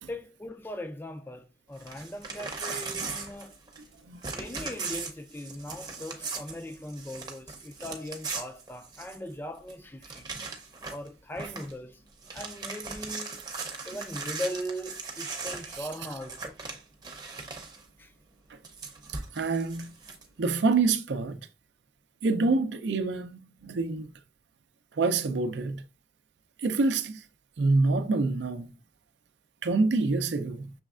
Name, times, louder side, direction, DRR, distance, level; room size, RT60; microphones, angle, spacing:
voice 1, 0.1-3.6 4.3-10.3 10.9-12.0 12.3-13.4 13.9-16.6 18.0-18.1, equal, 10° left, 0.3 m, -39 dB
Crumpling crinkling / Tearing, 1.8-3.9 4.2-9.3 9.7-9.8 10.0-11.1 11.3-11.7 12.1-17.8 18.6-20.2, right 4 dB, 25° right, 0.6 m, -38 dB
voice 2, 19.1-19.9 20.4-21.4 22.2-24.1 24.9-25.8 26.6-27.2 27.6-28.7 29.6-30.7, right 3 dB, 85° right, 0.5 m, -27 dB
6.2 x 3.2 x 2.4 m
head